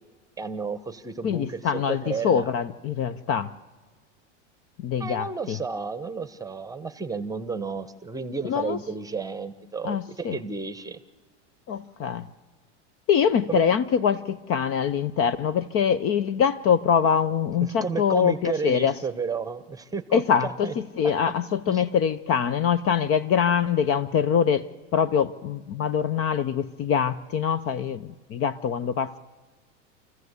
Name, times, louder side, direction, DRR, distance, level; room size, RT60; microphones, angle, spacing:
voice 1, 0.4-2.5 5.0-11.0 13.5-13.7 17.6-20.7 21.7-21.8, right 5 dB, 10° right, 13 dB, 1.1 m, -32 dB
voice 2, 1.2-3.5 4.8-5.6 8.4-8.8 9.8-10.4 11.7-12.2 13.1-18.9 20.1-24.7 24.9-29.2, left 7 dB, 40° left, 17 dB, 0.7 m, -24 dB
28.0 x 15.0 x 8.2 m, 1.4 s
supercardioid pair, 120°, 36 cm